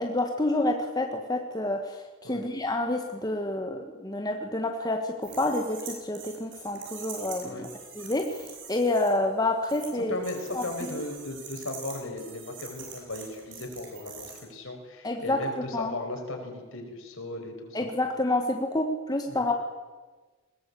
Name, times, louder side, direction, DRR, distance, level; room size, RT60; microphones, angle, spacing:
voice 1, 0.0-7.7 7.9-10.1 10.5-10.6 15.0-15.4 15.7-15.9 17.7-19.6, left 2 dB, 20° left, 4 dB, 1.3 m, -28 dB
sound 1, 5.2-9.1 9.6-9.9 10.2-14.4, right 6 dB, 55° right, 7.0 m, -44 dB
voice 2, 9.9-17.9 19.3-19.4, left 2 dB, 60° left, 3 dB, 5.2 m, -37 dB
21.0 x 18.0 x 8.4 m, 1.3 s
head